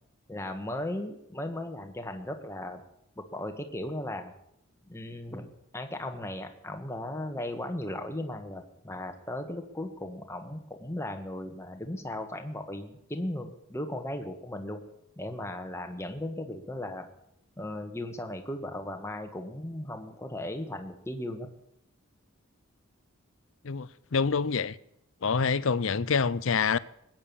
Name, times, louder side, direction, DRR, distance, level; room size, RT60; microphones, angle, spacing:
voice 1, 0.3-2.8 3.2-4.3 4.9-5.5 5.7-14.8 15.2-17.1 17.6-21.5, left 1 dB, 10° left, 1.5 m, -36 dB
voice 2, 23.6-24.8 25.2-26.8, left 5 dB, 60° left, 0.6 m, -26 dB
20.5 x 9.1 x 6.9 m
head